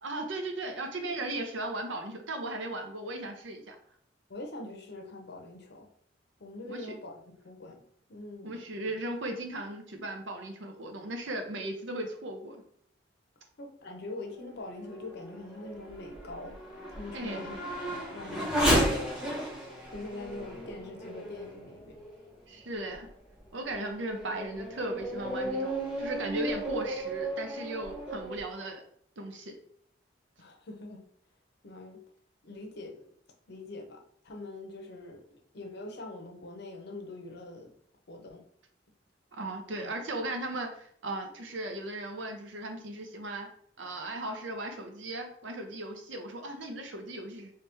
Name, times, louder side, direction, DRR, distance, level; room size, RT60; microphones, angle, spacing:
voice 1, 0.0-3.8 6.6-6.9 8.4-12.6 17.1-17.6 22.5-23.1 23.5-28.8 29.2-29.5 39.3-43.5 43.8-47.5, right 1 dB, 70° right, 4 dB, 0.7 m, -37 dB
voice 2, 4.3-5.9 6.4-7.8 8.1-8.6 13.6-16.6 16.9-17.6 17.9-19.0 19.9-21.9 30.4-31.0 31.6-32.0 32.4-33.0 33.5-37.7 38.1-38.4 39.8-39.9, left 2 dB, 60° left, 3 dB, 0.7 m, -43 dB
Race car auto racing / Accelerating revving vroom, 14.4-22.3 22.9-23.0 23.6-28.4, equal, 5° right, 1.0 m, -34 dB
3.2 x 2.9 x 3.4 m, 0.65 s
head